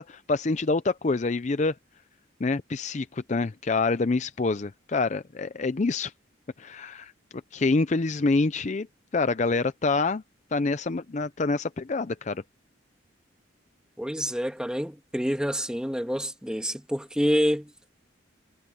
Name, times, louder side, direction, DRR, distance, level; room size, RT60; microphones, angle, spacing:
voice 1, 0.0-1.8 2.4-6.1 6.6-7.1 7.5-8.9 9.1-10.2 10.5-12.4, left 3 dB, 35° left, 0.5 m, -26 dB
voice 2, 14.0-17.7, equal, 5° right, 1.8 m, -27 dB
head